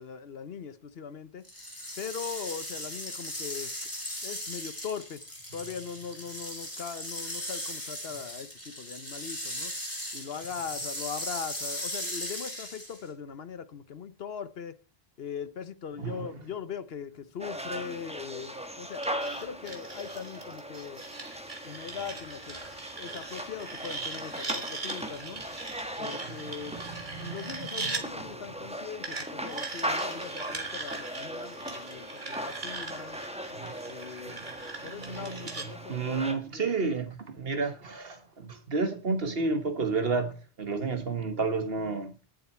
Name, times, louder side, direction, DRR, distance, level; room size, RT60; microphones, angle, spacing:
voice 1, 0.0-1.4 2.0-3.7 4.2-5.2 5.5-9.7 10.1-14.7 15.2-19.0 19.4-21.0 21.6-22.6 23.0-25.4 26.0-26.7 27.2-33.2 33.8-34.4 34.8-37.0, left 7 dB, 70° left, 1.2 m, -40 dB
sound 1, 1.4-13.1, equal, 15° left, 4.0 m, -38 dB
sound 2, 17.4-36.3, equal, 5° right, 1.2 m, -39 dB
sound 3, 19.0-28.0 29.0-35.7, right 3 dB, 50° right, 2.2 m, -40 dB
voice 2, 26.7-27.5 33.6-33.7 34.8-35.4 35.9-42.1, right 4 dB, 65° right, 1.6 m, -31 dB
18.5 x 7.7 x 4.4 m
omnidirectional pair, 1.1 m